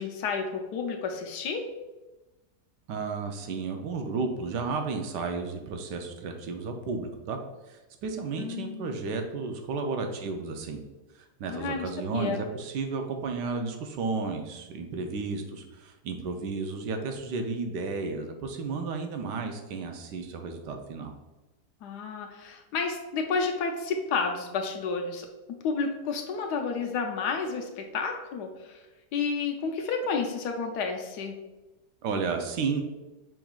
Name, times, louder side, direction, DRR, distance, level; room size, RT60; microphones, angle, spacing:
voice 1, 0.0-1.7 8.4-9.1 11.5-12.4 21.8-28.8 29.1-31.4, left 5 dB, 75° left, 4 dB, 1.1 m, -31 dB
voice 2, 2.9-7.4 7.7-10.8 11.1-21.1 32.0-32.8, right 4 dB, 80° right, 5 dB, 1.2 m, -33 dB
5.9 x 3.7 x 2.3 m, 1.1 s
omnidirectional pair, 1.9 m